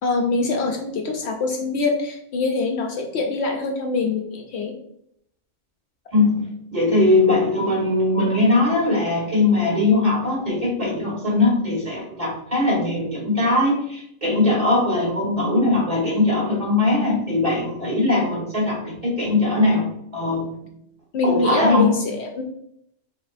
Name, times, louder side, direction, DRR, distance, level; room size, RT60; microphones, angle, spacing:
voice 1, 0.0-4.7 21.1-22.4, left 3 dB, 65° left, 3 dB, 0.8 m, -24 dB
voice 2, 6.1-6.4 6.7-19.9 20.1-20.5 21.2-22.0, left 2 dB, 30° right, -3 dB, 1.7 m, -20 dB
5.3 x 3.0 x 2.5 m, 0.73 s
omnidirectional pair, 1.3 m